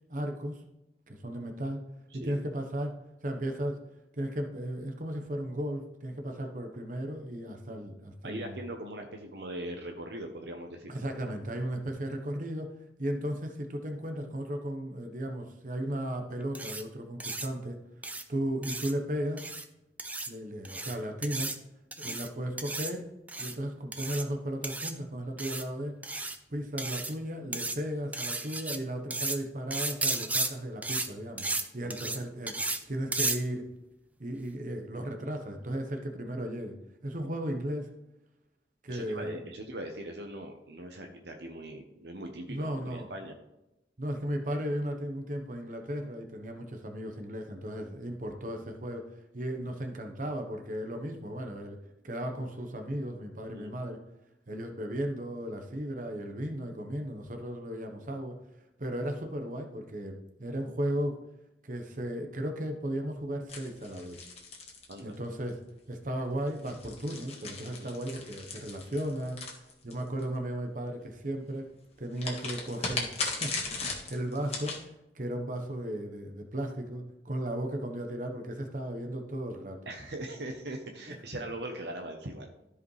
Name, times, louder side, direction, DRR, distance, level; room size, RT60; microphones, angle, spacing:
voice 1, 0.1-0.6 1.1-1.8 2.1-2.9 3.2-3.8 4.1-8.6 10.9-12.7 13.0-17.8 18.3-19.5 20.3-21.5 22.0-23.0 23.4-25.9 26.5-32.6 32.9-33.7 34.2-36.7 37.0-37.9 38.8-39.4 42.5-43.1 44.0-51.8 52.0-54.0 54.5-58.3 58.8-61.2 61.6-64.2 65.0-65.6 65.9-69.4 69.8-71.7 72.0-73.1 73.4-79.8 81.1-81.2, right 1 dB, 45° right, 4 dB, 1.1 m, -35 dB
voice 2, 8.2-11.0 22.0-22.2 31.8-32.1 38.9-43.3 53.5-53.7 64.9-65.2 67.8-68.0 79.9-82.5, right 1 dB, 70° right, 3 dB, 0.9 m, -40 dB
sound 1, 16.5-16.8 17.2-17.5 18.0-18.2 18.6-18.9 19.4-19.6 20.0-20.3 20.6-20.9 21.2-21.6 21.9-22.3 22.6-22.9 23.3-23.5 23.9-24.2 24.6-24.9 25.4-25.6 26.0-26.4 26.8-27.1 27.5-27.8 28.1-28.8 29.1-29.4 29.7-30.5 30.8-31.1 31.4-31.6 31.9-32.2 32.5-32.8 33.1-33.4, right 2 dB, 10° right, 0.5 m, -33 dB
crujir de hoja, 63.5-65.5 66.5-70.2 72.2-74.8, left 3 dB, 35° left, 1.6 m, -38 dB
13.5 x 5.0 x 3.2 m, 0.92 s
head